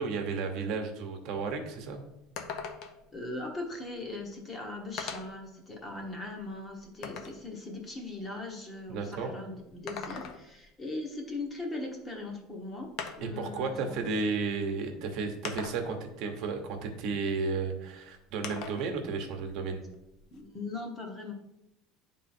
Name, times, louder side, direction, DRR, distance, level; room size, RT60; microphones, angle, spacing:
voice 1, 0.0-2.0 8.9-9.3 13.2-19.8, right 4 dB, 55° right, 4 dB, 1.0 m, -33 dB
sound 1, 1.4-1.5 1.8-1.9 2.4-3.1 4.2-4.3 5.0-5.4 6.0-7.4 9.7-10.6 12.1-12.2 13.0-13.4 14.4-14.5 15.4-16.1 18.4-18.9 19.3-20.4, left 6 dB, 50° left, 0.8 m, -40 dB
voice 2, 3.1-12.9 13.2-14.0 20.3-21.3, left 2 dB, 20° left, 1 dB, 1.1 m, -39 dB
9.1 x 3.7 x 4.3 m, 0.90 s
cardioid pair, 155°, 0 cm